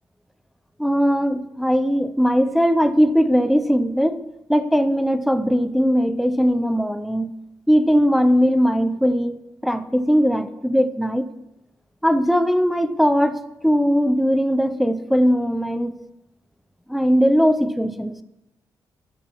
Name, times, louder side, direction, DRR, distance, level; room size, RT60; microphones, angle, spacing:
voice 1, 0.8-4.2 4.5-7.3 7.7-11.3 12.0-15.9 16.9-18.2, equal, ahead, 11 dB, 0.4 m, -19 dB
11.5 x 7.0 x 2.9 m, 0.93 s
wide cardioid pair, 145°, 7 cm